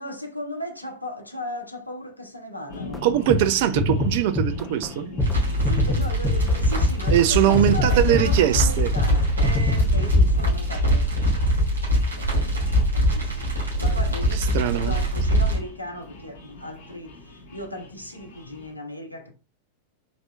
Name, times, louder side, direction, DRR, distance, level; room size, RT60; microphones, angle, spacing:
voice 1, 0.0-3.1 5.6-11.3 12.1-12.3 12.9-19.3, left 1 dB, 85° left, 0.8 m, -36 dB
sound 1, 2.7-18.7, left 2 dB, 55° left, 1.2 m, -42 dB
sound 2, 2.9-3.0 3.3-3.5 3.8-4.9 5.2-5.4 5.6-6.8 7.1-7.3 7.5-8.7 9.0-9.2 9.4-10.0, left 2 dB, 10° left, 0.5 m, -25 dB
voice 2, 3.0-5.1 7.1-8.9 14.5-14.9, right 11 dB, 50° right, 0.4 m, -21 dB
sound 3, 5.2-15.6, equal, 80° right, 1.7 m, -22 dB
4.0 x 2.8 x 2.2 m
figure-of-eight pair, 90°, 0 cm